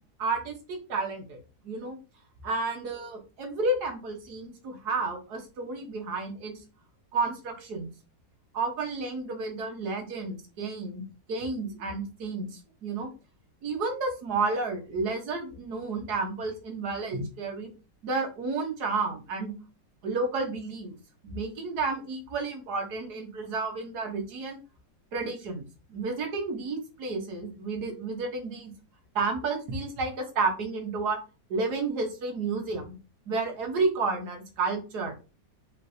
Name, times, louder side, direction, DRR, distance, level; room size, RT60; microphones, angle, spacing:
voice 1, 0.2-1.4 1.6-2.0 2.4-6.5 7.1-7.9 8.5-11.0 11.3-13.1 13.6-17.7 18.0-19.5 20.0-21.0 21.2-24.6 25.1-28.7 29.1-31.2 31.5-33.0 33.3-35.2, right 3 dB, 65° right, 2 dB, 1.6 m, -31 dB
5.3 x 3.3 x 2.6 m, 0.32 s
omnidirectional pair, 1.9 m